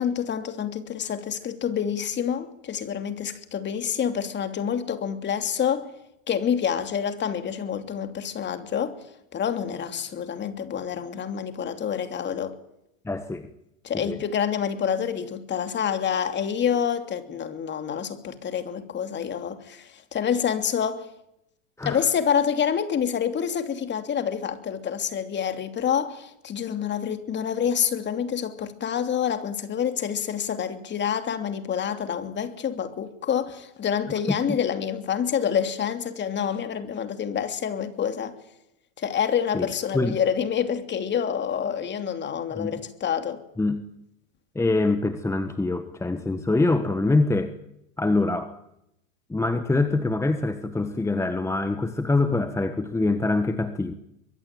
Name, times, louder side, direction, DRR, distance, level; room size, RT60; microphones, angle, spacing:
voice 1, 0.0-5.9 6.3-9.0 9.3-12.6 13.8-21.1 21.8-38.4 39.0-43.4, left 8 dB, 25° left, 2.9 m, -27 dB
voice 2, 13.0-13.5 13.9-14.2 21.8-22.0 34.3-34.6 39.5-39.7 39.9-40.2 42.5-42.8 43.6-43.8 44.5-47.5 48.0-48.5 49.3-53.9, left 2 dB, 5° left, 1.4 m, -24 dB
23.5 x 22.5 x 9.1 m
hypercardioid pair, 110°, 40 cm